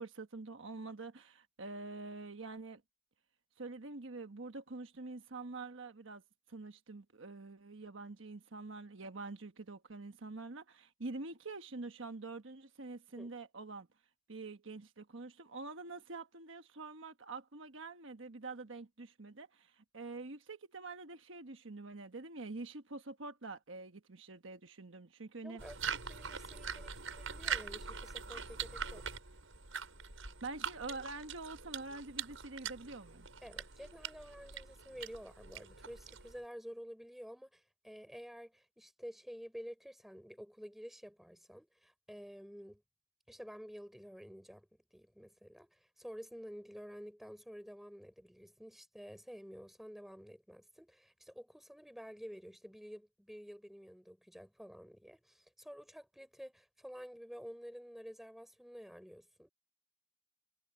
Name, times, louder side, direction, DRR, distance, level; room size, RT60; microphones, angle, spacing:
voice 1, 0.0-2.8 3.6-6.2 6.5-13.9 14.3-25.6 30.4-33.3, right 3 dB, 65° right, 1.3 m, -46 dB
voice 2, 25.4-25.8 26.0-29.1 33.4-42.8 43.3-59.5, equal, ahead, 4.8 m, -51 dB
sound 1, 25.6-36.4, right 7 dB, 80° right, 6.6 m, -43 dB
head